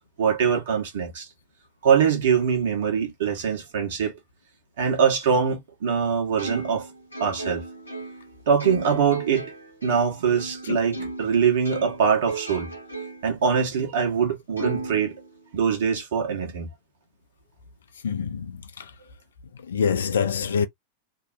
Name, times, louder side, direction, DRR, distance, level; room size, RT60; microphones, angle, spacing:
voice 1, 0.2-1.3 1.8-4.2 4.8-6.9 7.2-7.6 8.5-9.5 9.8-12.7 13.2-15.1 15.5-16.7, right 7 dB, 60° right, 1.1 m, -23 dB
Plucked string instrument, 6.4-11.3 11.6-13.4 13.8-13.9 14.6-15.7, right 3 dB, 85° left, 0.9 m, -36 dB
voice 2, 10.7-11.1 18.0-18.9 19.7-20.7, left 6 dB, 65° left, 0.4 m, -26 dB
2.8 x 2.1 x 2.5 m
figure-of-eight pair, 90°, 0 cm